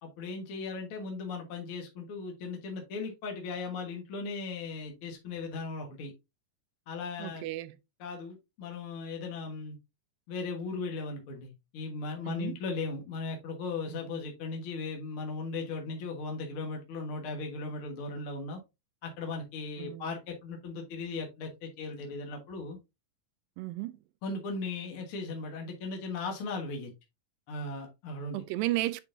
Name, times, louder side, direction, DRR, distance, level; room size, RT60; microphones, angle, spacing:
voice 1, 0.0-6.1 6.9-7.4 8.0-9.8 10.3-18.6 19.0-22.8 24.2-26.9 27.5-28.4, left 3 dB, 55° left, 1.6 m, -37 dB
voice 2, 7.2-7.8 12.2-12.6 13.9-14.2 19.8-20.2 23.6-24.0 28.3-29.0, right 17 dB, 85° right, 2.2 m, -34 dB
8.2 x 4.7 x 2.6 m
omnidirectional pair, 4.1 m